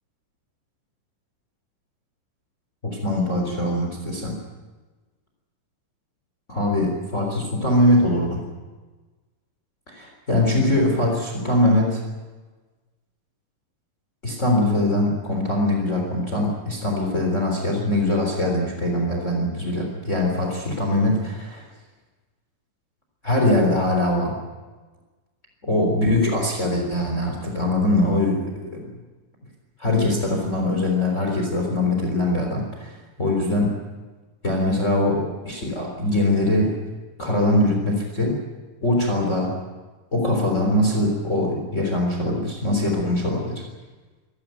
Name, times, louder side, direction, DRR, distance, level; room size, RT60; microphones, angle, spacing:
voice 1, 2.8-4.4 6.5-8.4 9.9-12.0 14.2-21.6 23.2-24.4 25.6-28.9 29.8-33.8 34.4-36.7 37.2-38.4 38.8-39.5 40.1-43.6, left 1 dB, 20° left, 1 dB, 3.9 m, -22 dB
26.0 x 13.5 x 9.4 m, 1.3 s
omnidirectional pair, 3.8 m